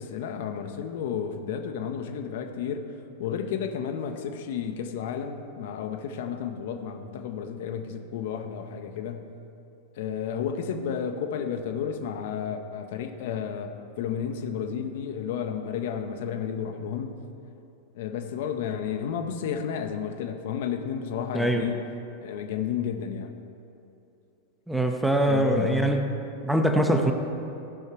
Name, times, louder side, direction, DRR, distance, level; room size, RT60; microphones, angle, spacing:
voice 1, 0.0-2.9 3.2-9.3 10.0-17.2 17.9-21.9 22.2-23.3 25.3-26.1, left 7 dB, 55° left, 6 dB, 0.6 m, -32 dB
voice 2, 21.3-21.7 24.7-26.0 26.4-27.1, right 1 dB, 5° right, 4 dB, 0.7 m, -23 dB
15.0 x 5.6 x 4.7 m, 2.7 s
figure-of-eight pair, 90°, 0 cm